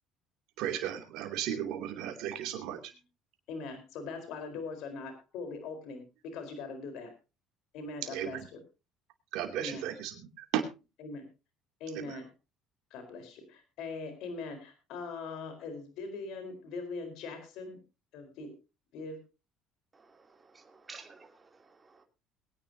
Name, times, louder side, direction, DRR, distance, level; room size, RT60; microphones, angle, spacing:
voice 1, 0.6-2.9 8.1-8.5 9.3-10.6 11.9-12.2, right 10 dB, 75° right, 5 dB, 2.7 m, -35 dB
voice 2, 3.5-7.1 7.7-8.6 9.6-9.9 11.0-11.3 11.8-12.3 12.9-17.8 18.1-18.5 18.9-19.2, left 3 dB, 70° left, 7 dB, 4.2 m, -41 dB
voice 3, 19.9-22.0, right 4 dB, 25° right, 4 dB, 3.0 m, -53 dB
22.0 x 9.9 x 2.8 m, 0.28 s
supercardioid pair, 80°, 0 cm